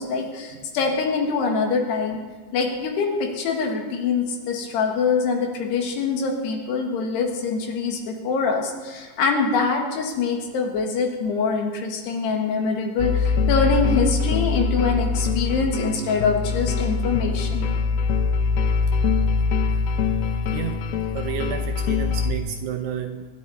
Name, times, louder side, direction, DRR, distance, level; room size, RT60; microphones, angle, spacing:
voice 1, 0.0-2.2 2.5-17.7, left 5 dB, 70° left, 2 dB, 3.5 m, -24 dB
sound 1, 13.0-22.3, left 5 dB, 85° left, 2.2 m, -23 dB
voice 2, 21.1-23.3, right 9 dB, 80° right, 4 dB, 2.5 m, -31 dB
26.0 x 10.5 x 4.1 m, 1.4 s
omnidirectional pair, 5.4 m